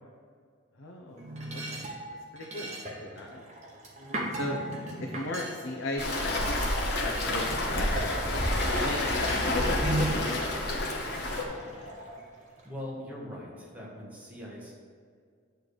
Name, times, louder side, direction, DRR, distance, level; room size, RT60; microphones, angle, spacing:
voice 1, 0.8-1.8 2.3-2.7 3.0-3.4 4.3-4.6 5.0-9.0 9.5-11.4, left 2 dB, 80° left, -1 dB, 0.8 m, -37 dB
sound 1, 1.1-6.7 7.2-12.7, right 1 dB, 35° right, 1.0 m, -38 dB
Waves surf, 6.0-11.4, left 1 dB, 55° left, 1.1 m, -29 dB
Mechanisms, 6.0-11.9, left 2 dB, 30° left, 0.4 m, -42 dB
voice 2, 12.6-14.7, left 1 dB, 5° right, -5 dB, 1.5 m, -41 dB
9.2 x 3.5 x 6.3 m, 2.1 s
head